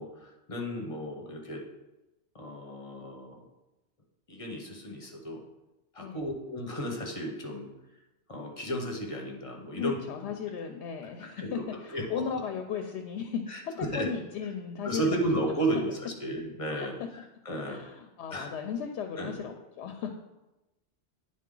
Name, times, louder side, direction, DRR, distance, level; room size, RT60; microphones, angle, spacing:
voice 1, 0.0-1.7 2.3-3.4 4.3-5.4 5.9-7.7 8.3-10.3 11.4-11.6 11.9-12.2 13.5-14.1 14.8-17.8 18.3-18.5 19.2-19.4, right 1 dB, 30° left, 1 dB, 0.9 m, -34 dB
voice 2, 9.8-15.5 16.7-16.9 17.7-20.1, left 7 dB, 80° left, 5 dB, 0.9 m, -36 dB
9.3 x 3.9 x 3.8 m, 1.0 s
omnidirectional pair, 1.2 m